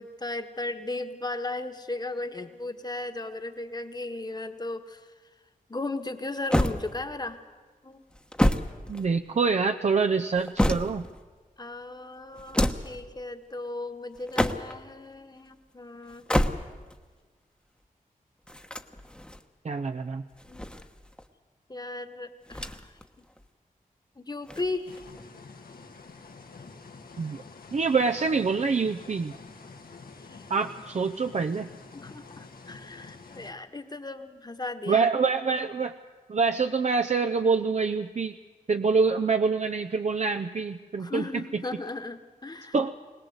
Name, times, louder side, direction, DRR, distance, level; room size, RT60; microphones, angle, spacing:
voice 1, 0.0-5.1 5.7-7.4 7.8-8.0 11.6-16.3 20.5-20.7 21.7-23.0 24.1-25.0 30.3-30.5 31.9-35.1 41.0-42.8, left 2 dB, 30° left, 8 dB, 1.5 m, -36 dB
sound 1, 6.5-7.3 8.1-9.5 10.1-11.2 12.3-13.0 14.1-14.9 16.1-17.0 18.5-19.4 20.3-21.3 22.5-23.0 23.4-23.5 24.4-25.2, left 1 dB, 5° left, 1.1 m, -28 dB
voice 2, 8.9-11.1 19.6-20.2 27.2-27.4 27.7-29.3 30.5-31.7 34.9-35.9 36.3-38.3 38.7-41.4 42.7-42.9, right 4 dB, 50° right, 6 dB, 0.7 m, -26 dB
sound 2, 24.9-33.5, left 4 dB, 85° left, 1.8 m, -47 dB
22.0 x 18.5 x 8.0 m, 1.4 s
wide cardioid pair, 75°, 15 cm